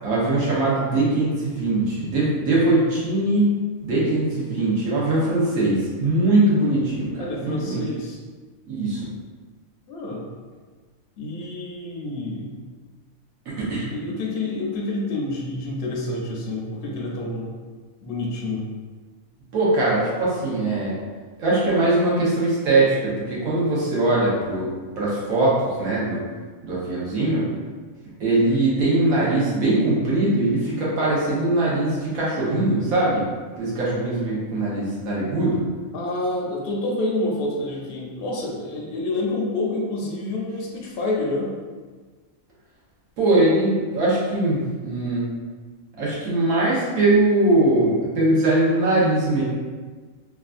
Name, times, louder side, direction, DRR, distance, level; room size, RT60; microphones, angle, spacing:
voice 1, 0.0-3.5 3.8-7.8 8.7-9.1 13.5-13.9 19.5-20.9 21.4-26.2 26.6-27.5 28.2-33.3 33.6-35.6 43.2-45.2 46.0-49.4, right 2 dB, 80° right, -7 dB, 1.4 m, -21 dB
voice 2, 7.2-8.2 9.9-10.2 11.2-12.5 13.9-17.5 18.0-18.6 35.9-41.5, left 2 dB, 60° left, -3 dB, 0.6 m, -28 dB
3.2 x 2.4 x 2.4 m, 1.4 s
omnidirectional pair, 1.5 m